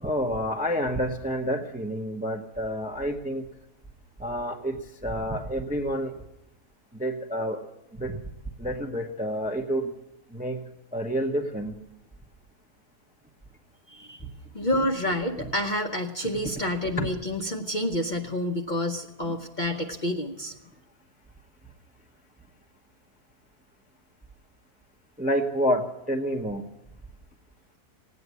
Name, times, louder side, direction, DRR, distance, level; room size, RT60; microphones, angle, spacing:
voice 1, 0.0-3.4 4.2-6.1 6.9-7.6 7.9-8.2 8.6-9.9 10.3-10.6 10.9-11.8 15.4-15.5 17.0-17.1 19.2-19.3 25.2-26.6, equal, 5° right, 4 dB, 0.7 m, -29 dB
voice 2, 13.9-14.2 14.5-20.5, left 1 dB, 35° left, 2 dB, 0.8 m, -28 dB
17.5 x 9.5 x 8.1 m, 0.88 s
omnidirectional pair, 1.7 m